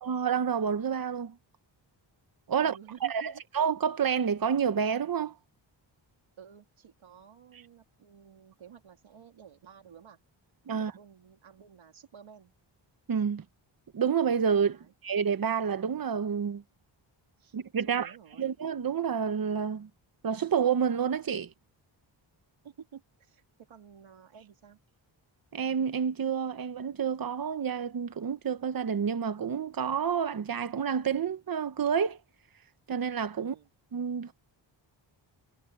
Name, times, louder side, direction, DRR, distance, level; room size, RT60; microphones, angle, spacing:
voice 1, 0.0-1.4 2.5-2.7 3.0-5.3 10.7-10.9 13.1-13.4 13.9-16.6 17.5-18.1 18.4-19.9 20.2-21.5 25.5-32.2 32.9-33.5 33.9-34.3, right 7 dB, 50° right, 1.2 m, -29 dB
voice 2, 2.5-3.4 6.4-10.2 10.7-12.5 14.7-14.9 17.4-17.6 17.8-18.5 22.6-24.8 33.4-33.7, right 7 dB, 85° right, 3.6 m, -52 dB
wide cardioid pair, 160°, 46 cm